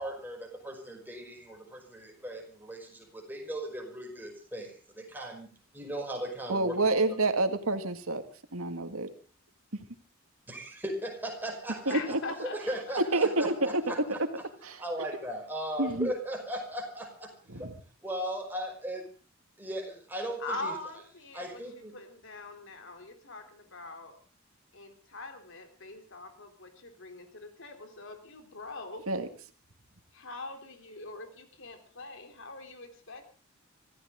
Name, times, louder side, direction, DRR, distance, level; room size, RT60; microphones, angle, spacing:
voice 1, 0.0-7.0 10.5-14.2 14.8-17.7 18.0-19.1 19.6-20.7 21.3-21.9, right 1 dB, 10° right, 2 dB, 5.4 m, -38 dB
voice 2, 6.5-8.2 8.5-9.1 11.9-12.2 13.1-13.9 14.6-14.8 15.8-16.1 17.5-17.7 29.1-29.3, right 2 dB, 80° right, 8 dB, 2.1 m, -28 dB
voice 3, 11.9-13.0 20.4-24.2 24.7-29.0 30.1-33.3, left 2 dB, 60° left, 5 dB, 3.6 m, -43 dB
25.5 x 15.0 x 3.8 m, 0.36 s
head